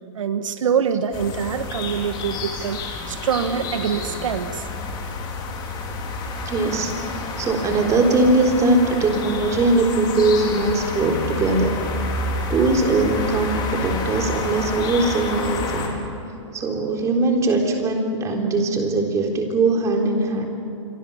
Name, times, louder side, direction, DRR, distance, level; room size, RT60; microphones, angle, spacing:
voice 1, 0.1-2.8 3.1-4.7, right 7 dB, 85° right, 9 dB, 1.4 m, -24 dB
sound 1, 1.1-15.9, left 3 dB, 25° left, 4.0 m, -29 dB
voice 2, 6.5-11.7 12.5-16.0 16.5-20.5, right 2 dB, 20° right, 2 dB, 3.7 m, -21 dB
27.5 x 24.0 x 7.2 m, 2.8 s
hypercardioid pair, 150°, 16 cm